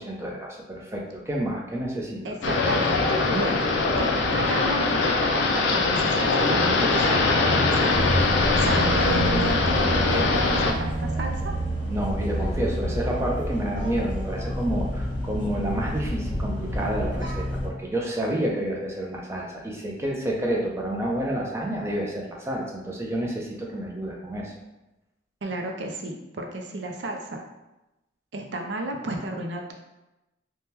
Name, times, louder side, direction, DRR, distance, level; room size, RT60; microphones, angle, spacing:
voice 1, 0.0-2.2 11.9-24.5, right 1 dB, 15° right, -2 dB, 0.5 m, -29 dB
voice 2, 2.2-3.6 4.0-11.5 25.4-27.4 28.3-29.7, right 1 dB, 70° right, 2 dB, 0.5 m, -32 dB
sound 1, 2.4-10.7, left 3 dB, 70° left, 0.4 m, -22 dB
sound 2, 7.9-17.7, equal, 25° left, 0.9 m, -29 dB
3.4 x 2.2 x 2.8 m, 0.98 s
head